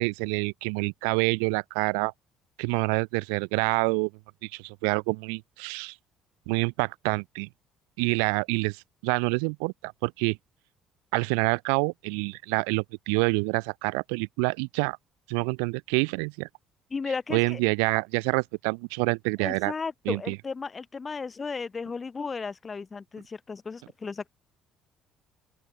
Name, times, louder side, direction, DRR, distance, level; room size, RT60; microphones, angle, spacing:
voice 1, 0.0-2.1 2.6-4.1 4.4-5.9 6.5-7.5 8.0-10.4 11.1-15.0 15.3-16.5 17.3-19.7 20.1-20.4, right 40 dB or more, 75° right, 0.3 m, -27 dB
voice 2, 16.9-17.6 19.4-24.3, left 4 dB, 30° left, 4.7 m, -34 dB
open air
hypercardioid pair, 55°, 0 cm